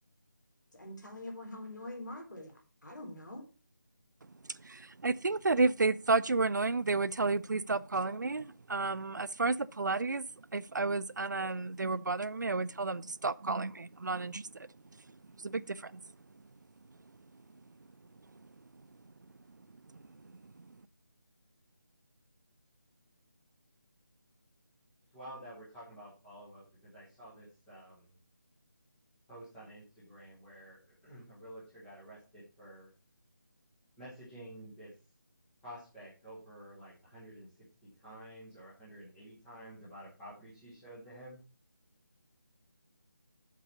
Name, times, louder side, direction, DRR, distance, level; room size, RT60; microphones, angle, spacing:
voice 1, 0.7-3.4, left 1 dB, 65° left, 3.6 m, -44 dB
voice 2, 4.6-10.2 10.5-14.7 15.4-16.0, right 3 dB, 65° right, 0.5 m, -31 dB
voice 3, 25.1-28.2 29.3-32.9 34.0-34.9 35.6-37.5 37.8-41.4, right 1 dB, 5° left, 1.0 m, -50 dB
7.4 x 4.8 x 6.7 m
figure-of-eight pair, 180°, 11 cm